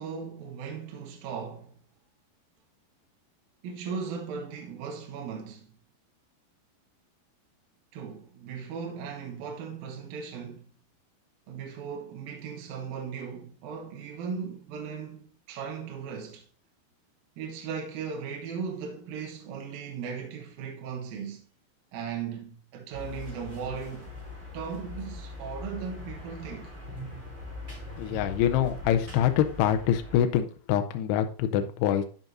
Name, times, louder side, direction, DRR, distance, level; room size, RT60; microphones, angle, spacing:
voice 1, 0.0-1.8 3.6-5.7 7.9-10.7 11.5-16.5 17.4-21.4 21.9-24.1 24.5-26.7, right 6 dB, 70° right, 2.4 m, -37 dB
sound 1, 22.9-30.2, left 2 dB, 20° right, 2.2 m, -41 dB
voice 2, 27.9-32.1, left 10 dB, 80° left, 2.4 m, -25 dB
12.0 x 5.2 x 2.6 m
omnidirectional pair, 5.4 m